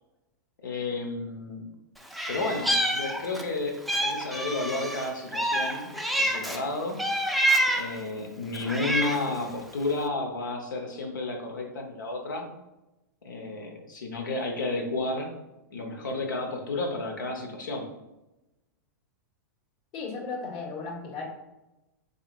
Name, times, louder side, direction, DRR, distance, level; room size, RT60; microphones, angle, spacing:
voice 1, 0.6-1.6 2.3-7.0 7.8-12.5 13.2-15.3 15.7-17.9, left 2 dB, 85° left, 2 dB, 1.1 m, -32 dB
Meow, 2.1-3.5 3.9-6.6 7.0-8.0 8.5-9.4, right 1 dB, ahead, 0.4 m, -27 dB
voice 2, 19.9-21.3, left 4 dB, 50° left, -1 dB, 1.6 m, -35 dB
5.5 x 3.9 x 2.4 m, 0.97 s
hypercardioid pair, 120°, 10 cm